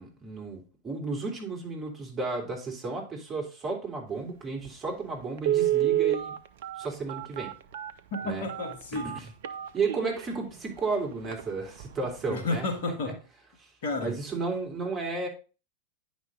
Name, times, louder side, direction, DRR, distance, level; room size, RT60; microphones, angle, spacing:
voice 1, 0.0-6.3 6.8-7.5 8.2-8.4 8.9-9.3 9.7-12.7 13.6-13.7 14.0-15.3, right 4 dB, 20° right, 1 dB, 2.8 m, -33 dB
Telephone, 4.7-4.8 5.4-10.3 10.8-10.9 11.2-11.4 11.8-12.1 12.4-12.5, right 13 dB, 55° right, 0.5 m, -29 dB
voice 2, 8.1-9.2 12.3-13.2 13.8-14.2, left 2 dB, 55° left, 4 dB, 1.8 m, -31 dB
9.6 x 5.3 x 3.7 m, 0.32 s
figure-of-eight pair, 90°, 0 cm